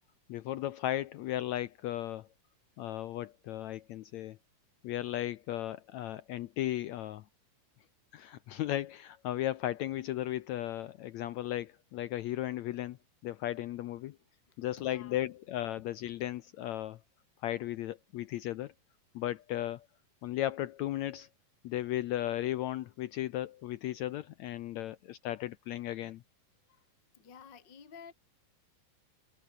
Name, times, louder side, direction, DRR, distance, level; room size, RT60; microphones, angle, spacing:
voice 1, 0.3-2.3 2.8-4.4 4.8-7.2 8.1-13.0 13.2-14.2 14.6-17.0 17.4-18.7 19.1-19.8 20.2-21.3 21.6-26.2, left 13 dB, 80° left, 1.6 m, -35 dB
voice 2, 14.5-15.4 15.8-15.9 26.7-26.9 27.1-28.1, left 6 dB, 30° left, 3.1 m, -53 dB
omnidirectional pair, 4.1 m